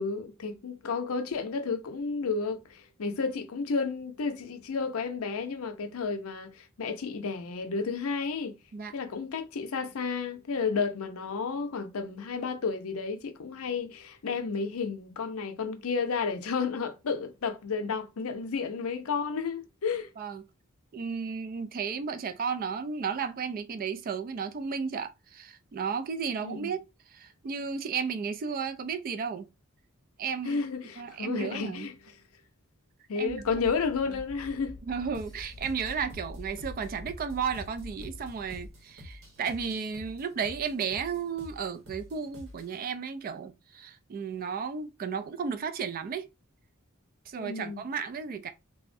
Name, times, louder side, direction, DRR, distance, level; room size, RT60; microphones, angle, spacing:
voice 1, 0.0-8.5 8.9-20.1 26.4-26.7 30.4-31.9 33.1-34.8 47.3-47.8, left 5 dB, 70° left, 0.5 m, -32 dB
voice 2, 20.9-26.8 27.1-29.5 30.2-30.6 31.0-31.9 33.2-33.4 34.8-46.3 47.3-48.5, right 6 dB, 40° right, 0.3 m, -33 dB
sound 1, 33.3-38.7, left 1 dB, 10° left, 0.7 m, -46 dB
sound 2, 35.1-42.8, left 1 dB, 65° right, 0.9 m, -49 dB
3.4 x 2.1 x 2.5 m
head